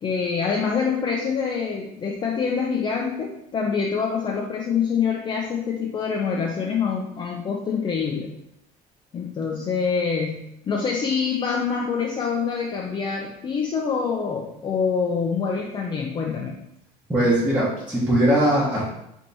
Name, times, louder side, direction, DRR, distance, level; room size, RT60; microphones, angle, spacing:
voice 1, 0.0-8.3 9.1-16.6, left 6 dB, 30° left, -1 dB, 0.5 m, -25 dB
voice 2, 17.1-18.8, right 1 dB, 10° right, -8 dB, 1.1 m, -20 dB
3.4 x 2.9 x 4.0 m, 0.80 s
cardioid pair, 130°, 16 cm